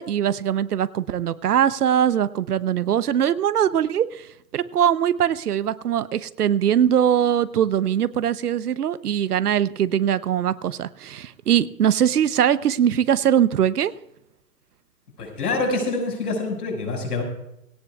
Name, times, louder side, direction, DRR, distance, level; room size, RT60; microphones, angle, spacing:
voice 1, 0.0-4.3 4.5-13.9, right 9 dB, 65° right, 15 dB, 0.9 m, -21 dB
voice 2, 15.2-17.2, left 3 dB, 65° left, 3 dB, 5.9 m, -26 dB
19.5 x 17.5 x 2.4 m, 0.84 s
hypercardioid pair, 150°, 50 cm